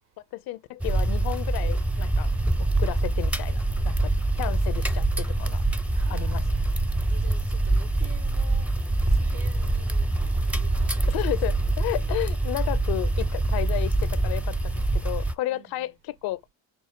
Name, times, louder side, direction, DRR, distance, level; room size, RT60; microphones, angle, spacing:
voice 1, 0.3-2.3 2.6-5.6 6.1-6.4 11.1-16.4, left 16 dB, 70° left, 0.6 m, -33 dB
sound 1, 0.8-15.3, right 2 dB, 5° right, 0.5 m, -25 dB
voice 2, 5.9-6.4 7.1-8.7 9.1-12.2 15.5-15.9, right 4 dB, 80° right, 2.5 m, -49 dB
5.9 x 2.1 x 3.6 m
supercardioid pair, 70°, 39 cm